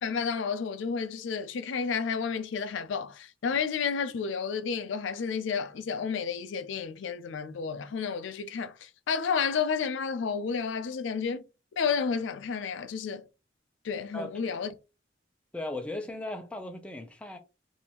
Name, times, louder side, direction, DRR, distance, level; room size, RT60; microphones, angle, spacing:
voice 1, 0.0-11.4 11.8-13.3 13.8-14.7, left 6 dB, 90° left, 0.4 m, -31 dB
voice 2, 14.1-14.6 15.5-17.4, left 1 dB, 5° left, 0.4 m, -37 dB
3.4 x 2.6 x 2.9 m
head